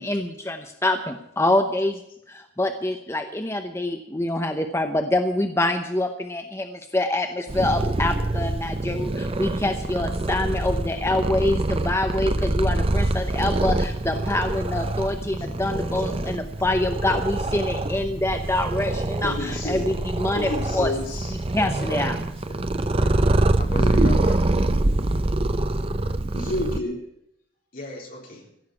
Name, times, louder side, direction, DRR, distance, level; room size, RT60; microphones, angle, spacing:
voice 1, 0.0-2.0 2.3-20.9 21.5-22.2, left 1 dB, 15° left, 6 dB, 0.7 m, -25 dB
Purr, 7.5-26.8, right 2 dB, 30° right, 0.6 m, -25 dB
voice 2, 19.2-19.9 20.3-21.3 23.7-24.0 26.3-27.0, left 1 dB, 90° left, -5 dB, 3.5 m, -30 dB
voice 3, 22.5-23.1 23.6-24.4 27.7-28.5, left 1 dB, 50° left, -1 dB, 3.8 m, -39 dB
15.5 x 6.6 x 9.6 m, 0.78 s
head